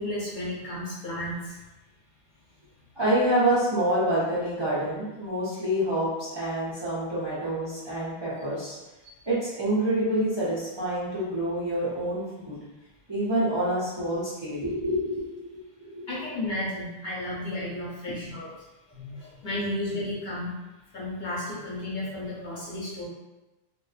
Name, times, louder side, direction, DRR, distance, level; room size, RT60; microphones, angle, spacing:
voice 1, 0.0-1.5 16.1-18.5 18.9-20.5 20.9-23.1, left 1 dB, 55° left, -8 dB, 0.9 m, -33 dB
voice 2, 3.0-8.8 9.3-12.6 13.1-16.1, right 1 dB, 35° right, -10 dB, 0.5 m, -27 dB
2.5 x 2.1 x 2.4 m, 1.1 s
omnidirectional pair, 1.0 m